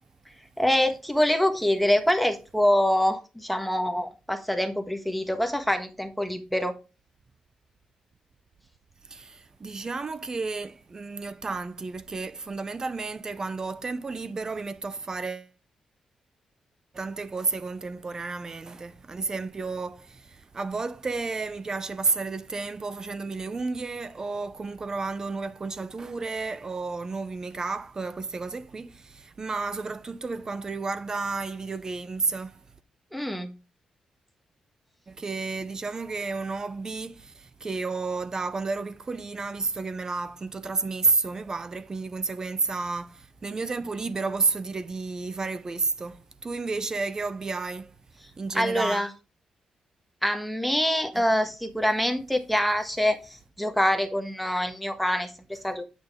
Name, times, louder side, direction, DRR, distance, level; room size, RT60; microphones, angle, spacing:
voice 1, 0.6-6.7 33.1-33.5 48.5-49.1 50.2-55.8, equal, ahead, 1.4 m, -25 dB
voice 2, 9.1-15.5 16.9-32.6 35.1-47.9 48.4-49.1 51.1-51.2, right 3 dB, 30° right, 0.7 m, -31 dB
8.9 x 6.1 x 3.6 m
cardioid pair, 115°, 2 cm